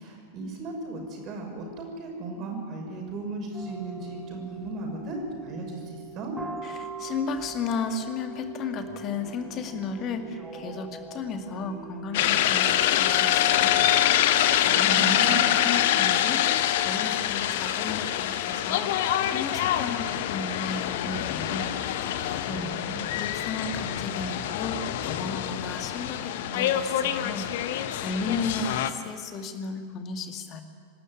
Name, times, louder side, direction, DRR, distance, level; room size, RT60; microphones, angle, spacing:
voice 1, 0.0-6.3 14.9-15.5 22.5-23.1, right 2 dB, 35° right, 1 dB, 6.1 m, -36 dB
sound 1, 3.5-13.2, right 4 dB, 10° right, 2.9 m, -42 dB
voice 2, 6.6-13.9 14.6-16.4 16.8-18.9 19.3-21.7 22.5-22.7 23.1-24.8 25.0-27.5 27.8-30.6, left 4 dB, 35° left, 6 dB, 2.1 m, -34 dB
sound 2, 12.1-28.9, left 11 dB, 55° left, 1.1 m, -25 dB
26.0 x 12.0 x 9.7 m, 2.2 s
figure-of-eight pair, 90°, 0 cm